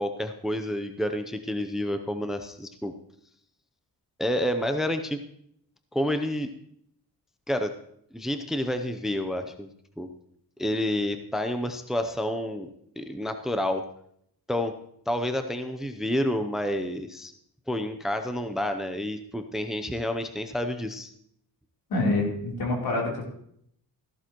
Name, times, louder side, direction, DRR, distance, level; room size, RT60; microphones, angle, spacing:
voice 1, 0.0-2.9 4.2-5.2 5.9-6.5 7.5-7.7 8.1-9.7 10.0-10.1 10.6-12.7 13.0-13.9 14.5-14.7 15.1-17.3 17.7-21.1, left 1 dB, ahead, 7 dB, 0.7 m, -29 dB
voice 2, 21.9-23.2, left 2 dB, 70° left, -1 dB, 3.5 m, -26 dB
14.5 x 12.5 x 3.0 m, 0.70 s
cardioid pair, 115°, 38 cm